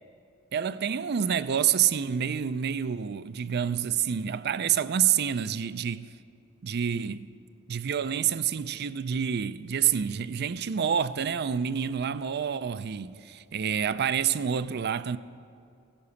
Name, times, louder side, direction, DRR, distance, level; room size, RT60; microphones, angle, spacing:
voice 1, 0.5-6.1 6.6-7.3 7.7-15.2, right 8 dB, 50° right, 0.4 m, -28 dB
16.0 x 11.5 x 7.0 m
head